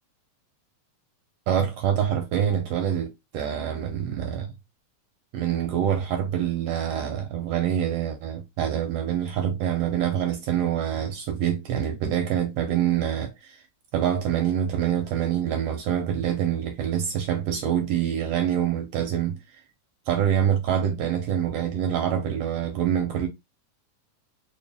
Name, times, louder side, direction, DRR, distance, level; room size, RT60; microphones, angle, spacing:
voice 1, 1.5-4.5 5.3-13.6 13.9-19.4 20.1-23.3, right 9 dB, 75° right, 1.5 m, -26 dB
4.9 x 2.4 x 3.4 m
omnidirectional pair, 3.4 m